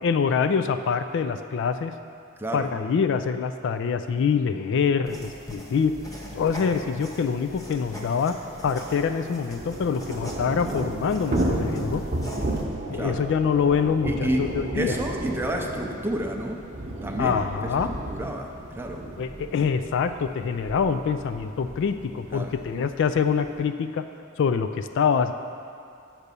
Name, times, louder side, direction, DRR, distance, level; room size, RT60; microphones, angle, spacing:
voice 1, 0.0-1.9 2.5-6.0 6.3-12.0 12.9-15.0 17.2-17.9 19.2-24.0 24.4-25.3, left 6 dB, 55° left, 9 dB, 0.3 m, -25 dB
voice 2, 2.4-2.7 12.9-13.2 14.0-14.4 14.7-16.6 17.0-19.0 22.3-22.5, right 1 dB, 10° right, 1 dB, 0.6 m, -30 dB
sound 1, 5.0-12.6, equal, 15° left, 1.0 m, -41 dB
Thunder / Rain, 7.0-7.1 7.3-7.4 7.7-23.6, right 1 dB, 35° right, 0.9 m, -33 dB
6.6 x 6.0 x 6.8 m, 2.5 s
head